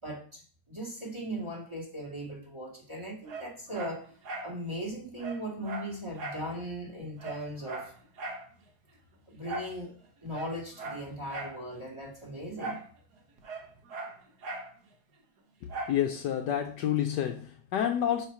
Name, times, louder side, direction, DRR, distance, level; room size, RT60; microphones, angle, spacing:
voice 1, 0.0-4.0 4.4-7.9 9.3-9.9 10.2-12.8, equal, 15° right, 1.7 m, -38 dB
Dog, 3.3-4.5 4.9-5.0 5.2-6.5 6.8-6.9 7.2-8.5 9.4-9.8 10.3-11.6 12.6-12.9 13.2-14.7 15.7-16.0 16.5-16.6, right 3 dB, 60° right, 1.5 m, -39 dB
voice 2, 15.6-18.3, left 10 dB, 70° left, 1.1 m, -29 dB
5.6 x 4.5 x 5.6 m
omnidirectional pair, 2.1 m